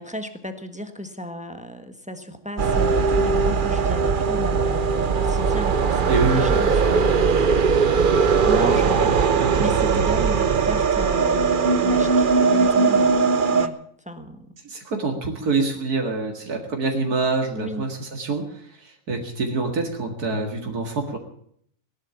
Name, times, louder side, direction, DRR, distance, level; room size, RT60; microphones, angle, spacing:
voice 1, 0.0-7.4 8.4-13.8 14.0-14.5 17.5-17.9, equal, 5° right, 8 dB, 1.2 m, -34 dB
sound 1, 2.6-13.7, right 5 dB, 45° right, 0.8 m, -19 dB
voice 2, 6.1-6.5 8.7-10.1 14.6-21.2, right 3 dB, 80° right, 3 dB, 2.5 m, -26 dB
18.0 x 11.5 x 7.0 m, 0.65 s
omnidirectional pair, 1.6 m